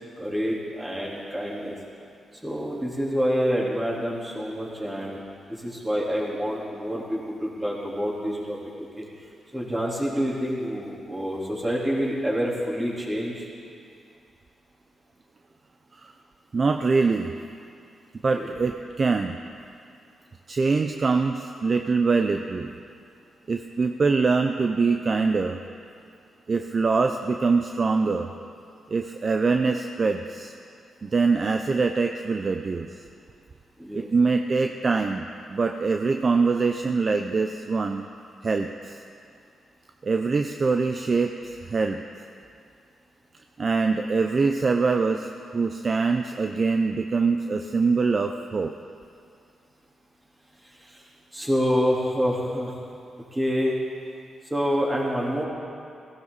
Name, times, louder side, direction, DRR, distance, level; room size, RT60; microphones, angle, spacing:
voice 1, 0.2-1.8 2.4-5.2 5.5-9.0 9.5-13.5 18.3-18.5 33.8-34.1 50.6-51.0 51.3-52.8 53.3-53.8 54.5-55.4, equal, 15° right, -5 dB, 3.8 m, -27 dB
voice 2, 16.5-17.3 18.2-19.4 20.5-22.7 23.5-25.6 26.5-28.3 28.9-30.5 31.0-32.9 33.9-38.1 38.4-39.0 40.0-42.0 43.6-48.7, right 4 dB, 40° right, 5 dB, 0.6 m, -24 dB
16.5 x 15.5 x 4.1 m, 2.4 s
cardioid pair, 85°, 0 cm